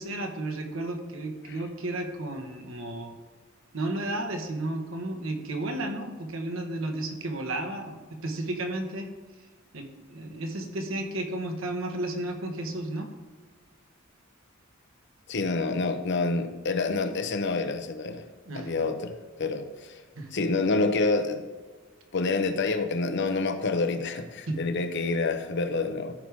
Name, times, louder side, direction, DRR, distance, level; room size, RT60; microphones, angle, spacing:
voice 1, 0.0-3.1 3.7-9.1 9.7-13.1 18.5-18.7 20.1-20.3 24.5-24.6, right 1 dB, 75° right, 4 dB, 1.3 m, -33 dB
voice 2, 15.3-18.2 18.5-19.1 19.4-20.0 20.3-21.4 22.1-26.1, left 3 dB, 60° left, 8 dB, 0.8 m, -27 dB
14.0 x 5.1 x 3.5 m, 1.4 s
head